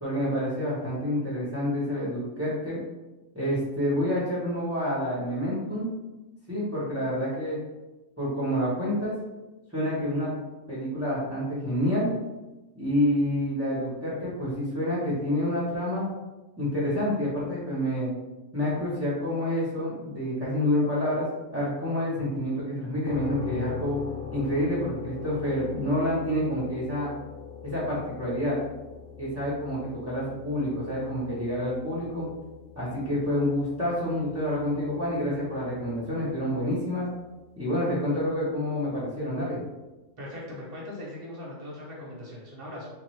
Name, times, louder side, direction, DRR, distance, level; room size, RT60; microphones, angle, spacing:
voice 1, 0.0-2.8 3.3-5.9 6.5-7.6 8.2-9.1 9.7-10.3 10.7-12.1 12.8-16.1 16.6-18.1 18.5-21.3 21.5-24.0 24.3-27.1 27.6-28.6 29.2-32.3 32.8-37.0 37.6-39.6, left 1 dB, 15° right, -8 dB, 0.6 m, -28 dB
sound 1, 23.0-36.8, left 6 dB, 70° left, 1.0 m, -42 dB
voice 2, 40.2-42.9, left 1 dB, 50° right, -4 dB, 0.8 m, -40 dB
3.5 x 2.9 x 3.1 m, 1.1 s
omnidirectional pair, 1.5 m